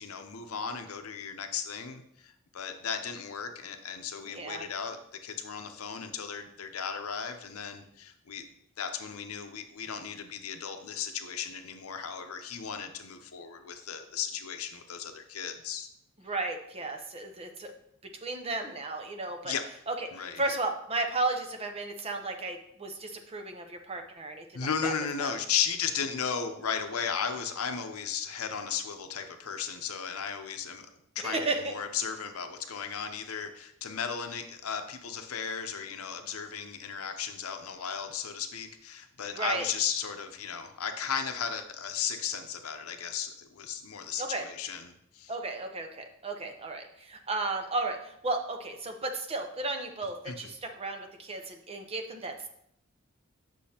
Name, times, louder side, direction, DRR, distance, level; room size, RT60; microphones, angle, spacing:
voice 1, 0.0-5.0 5.2-8.4 8.8-15.9 19.4-19.6 20.1-20.4 24.5-30.9 31.2-45.3 50.3-50.4, left 7 dB, 85° left, 7 dB, 0.7 m, -35 dB
voice 2, 4.3-4.6 16.2-17.7 18.2-19.5 19.9-24.9 25.2-25.3 31.2-31.7 39.3-39.7 44.2-44.5 45.3-52.5, right 2 dB, 25° right, 4 dB, 0.7 m, -34 dB
8.3 x 6.1 x 2.9 m, 0.73 s
head